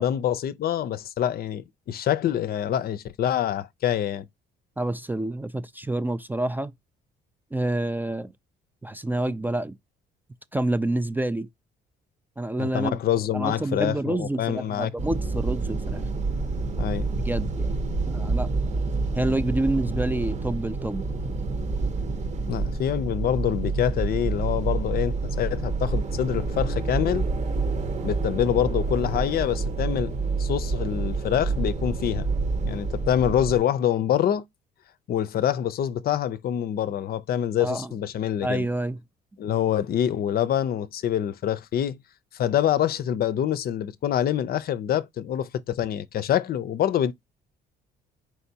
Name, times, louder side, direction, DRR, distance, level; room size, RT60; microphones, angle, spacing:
voice 1, 0.0-4.3 12.6-14.9 16.8-17.1 22.5-27.3 28.0-30.1 30.4-32.3 32.6-34.4 35.1-38.7 39.4-42.0 42.3-47.1, left 10 dB, 55° left, 0.5 m, -26 dB
voice 2, 4.8-6.7 7.5-8.3 8.8-9.7 10.5-11.5 12.4-13.0 13.3-16.1 17.2-17.8 18.1-18.5 19.1-21.0 37.6-38.0 38.4-39.0, right 1 dB, 10° right, 0.4 m, -28 dB
sound 1, 15.0-33.6, right 3 dB, 40° right, 0.9 m, -28 dB
4.6 x 3.4 x 2.7 m
cardioid pair, 100°, 19 cm